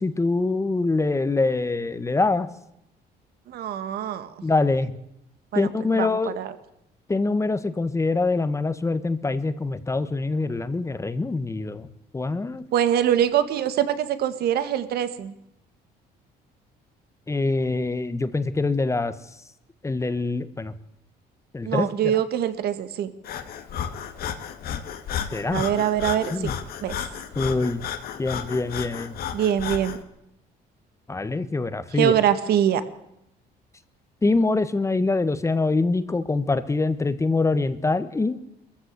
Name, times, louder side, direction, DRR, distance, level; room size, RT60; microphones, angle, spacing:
voice 1, 0.0-2.5 4.4-4.9 5.5-6.4 7.1-11.9 12.1-12.6 17.3-19.1 19.8-20.7 21.5-22.1 25.3-25.7 26.3-26.5 27.4-27.8 28.2-29.2 31.1-32.1 34.2-38.4, left 3 dB, 15° left, 13 dB, 1.4 m, -24 dB
voice 2, 3.5-4.3 5.5-5.7 6.0-6.5 12.7-15.3 21.6-23.1 25.5-26.5 26.8-27.0 29.3-30.0 31.9-32.8, right 10 dB, 70° right, 12 dB, 1.9 m, -23 dB
Breathing, 23.2-30.0, left 8 dB, 65° left, 2.1 m, -33 dB
22.5 x 14.5 x 8.3 m, 0.83 s
cardioid pair, 110°, 17 cm